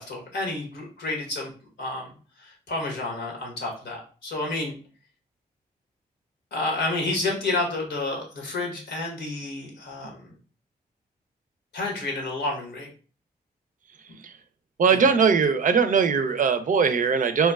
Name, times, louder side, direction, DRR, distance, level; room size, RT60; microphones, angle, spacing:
voice 1, 0.0-1.5 1.8-2.1 2.4-4.7 6.5-10.2 11.7-12.9 14.9-15.1, left 2 dB, 85° left, -1 dB, 0.9 m, -30 dB
voice 2, 14.8-17.5, right 5 dB, 50° right, 10 dB, 0.4 m, -20 dB
2.9 x 2.1 x 2.3 m, 0.39 s
cardioid pair, 50°, 17 cm